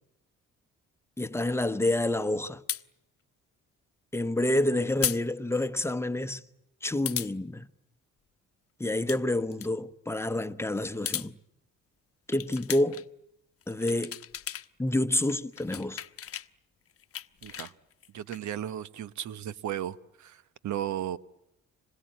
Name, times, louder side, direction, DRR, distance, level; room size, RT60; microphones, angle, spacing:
voice 1, 1.2-2.6 4.1-6.4 6.8-7.7 8.8-11.4 12.3-13.0 13.7-14.2 14.8-16.0, left 1 dB, 10° left, 1.0 m, -28 dB
sound 1, 2.7-2.8 5.0-5.2 5.6-5.7 7.0-7.3 8.8-9.2 9.5-9.7 10.8-11.3 12.3-13.0 13.6-14.7 15.0-16.5 16.9-18.4, left 9 dB, 50° left, 0.9 m, -35 dB
voice 2, 17.4-17.7 18.1-21.2, right 11 dB, 70° right, 1.1 m, -35 dB
26.5 x 21.5 x 9.2 m
cardioid pair, 90°, 30 cm